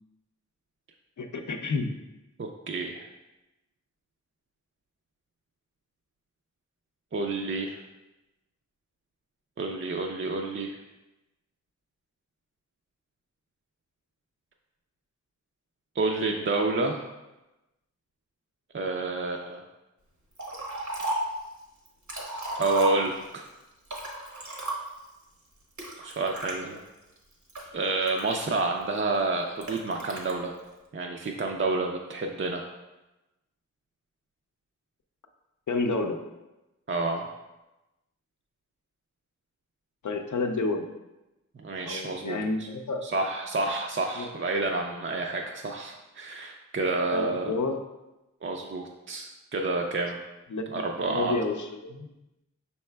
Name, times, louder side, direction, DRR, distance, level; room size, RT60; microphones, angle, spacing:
voice 1, 1.2-1.9 35.7-36.2 40.0-40.9 41.8-43.1 44.2-44.3 47.1-47.8 50.5-52.1, left 3 dB, 80° left, 5 dB, 0.5 m, -30 dB
voice 2, 2.4-3.1 7.1-7.8 9.6-10.8 16.0-17.0 18.7-19.6 22.6-23.5 26.0-26.8 27.7-30.6 30.9-32.6 36.9-37.3 41.6-42.4 43.0-47.5 48.4-50.2 50.7-51.4, right 3 dB, 45° right, 2 dB, 0.4 m, -29 dB
Liquid, 20.4-21.4 21.9-23.4 23.8-25.1 25.8-26.6 27.2-28.8 29.6-30.3, right 1 dB, 70° right, 1.0 m, -34 dB
5.5 x 4.2 x 2.2 m, 1.0 s
wide cardioid pair, 50°, 30 cm